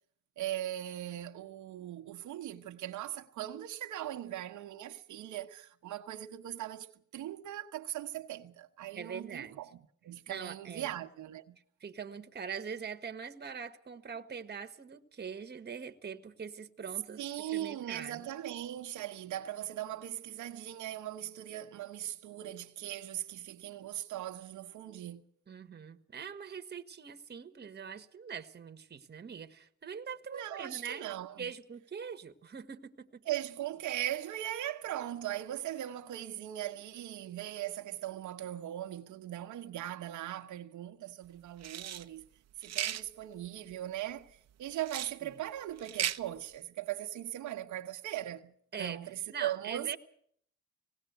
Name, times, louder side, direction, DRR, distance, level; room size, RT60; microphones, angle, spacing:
voice 1, 0.4-9.7 10.0-11.6 17.2-25.2 30.3-31.5 33.3-42.3 42.6-48.5 48.8-49.9, right 12 dB, 80° right, 1.2 m, -39 dB
voice 2, 8.9-9.6 10.3-10.9 11.8-17.2 17.5-18.2 25.5-31.0 31.4-33.2 45.2-45.4 48.7-49.0 49.3-50.0, right 6 dB, 35° right, 1.5 m, -43 dB
sound 1, 41.6-42.0 42.6-43.0 44.8-45.1 45.8-46.2, right 11 dB, 60° right, 1.0 m, -35 dB
19.0 x 17.5 x 8.1 m
cardioid pair, 90°, 30 cm